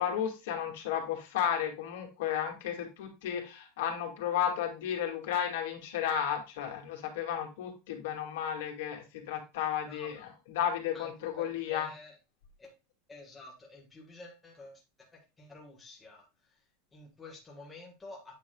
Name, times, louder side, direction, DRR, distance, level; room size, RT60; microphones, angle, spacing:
voice 1, 0.0-11.9, left 9 dB, 65° left, 2 dB, 2.2 m, -33 dB
voice 2, 11.4-12.2 12.6-12.7 13.1-15.1 15.4-16.2 16.9-18.3, left 2 dB, 10° left, -1 dB, 1.4 m, -50 dB
8.7 x 5.8 x 2.3 m, 0.27 s
supercardioid pair, 180°, 0 cm